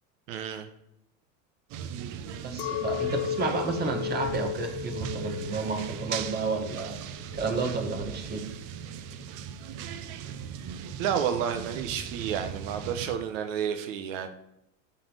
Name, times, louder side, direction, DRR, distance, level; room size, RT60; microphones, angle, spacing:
voice 1, 0.3-0.7 11.0-14.3, right 8 dB, 75° right, 7 dB, 1.0 m, -30 dB
sound 1, 1.7-13.2, right 8 dB, 50° right, 0.8 m, -39 dB
voice 2, 2.4-8.4, right 4 dB, 25° right, 3 dB, 1.7 m, -31 dB
Chink clink, 2.6-8.1, left 9 dB, 65° left, 0.7 m, -35 dB
7.4 x 4.3 x 6.5 m, 0.82 s
supercardioid pair, 120°, 39 cm